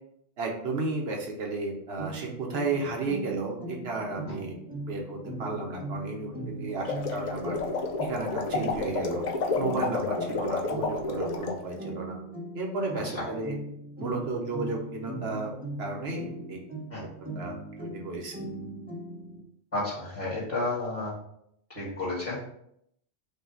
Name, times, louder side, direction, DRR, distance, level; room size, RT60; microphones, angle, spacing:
voice 1, 0.4-4.6 4.9-6.3 6.6-7.6 8.0-9.2 9.5-12.2 12.5-13.5 14.0-15.5 15.8-16.6 17.3-18.4, right 3 dB, 60° right, 0 dB, 1.1 m, -33 dB
sound 1, 2.0-19.4, right 2 dB, 10° right, 0.7 m, -39 dB
sound 2, 6.7-11.6, left 3 dB, 50° left, 0.5 m, -31 dB
voice 2, 19.7-21.1 21.7-22.3, left 2 dB, 30° left, -9 dB, 1.9 m, -31 dB
5.5 x 2.4 x 3.9 m, 0.73 s
omnidirectional pair, 1.2 m